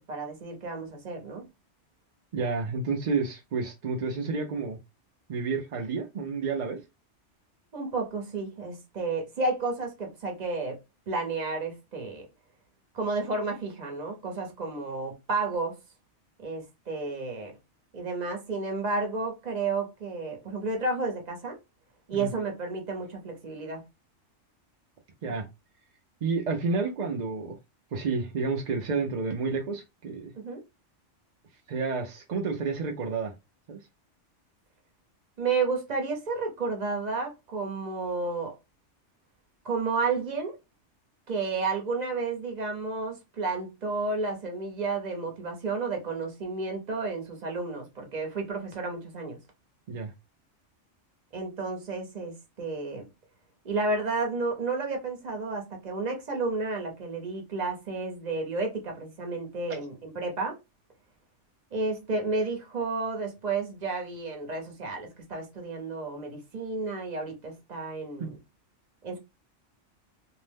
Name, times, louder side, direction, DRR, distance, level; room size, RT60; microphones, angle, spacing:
voice 1, 0.0-1.4 7.7-10.8 11.1-12.3 12.9-15.8 16.4-17.5 17.9-21.6 22.1-23.8 30.3-30.6 35.4-38.5 39.6-40.6 41.3-49.4 51.3-53.0 53.6-60.6 61.7-68.4 69.0-69.2, right 3 dB, 40° right, 0.8 m, -31 dB
voice 2, 2.3-4.8 5.3-6.8 22.1-22.3 25.2-25.5 26.2-27.6 27.9-30.3 31.7-33.3 33.7-33.8 49.9-50.1 59.7-59.8 68.2-68.3, right 4 dB, 55° right, 0.5 m, -30 dB
2.6 x 2.1 x 3.3 m
omnidirectional pair, 1.2 m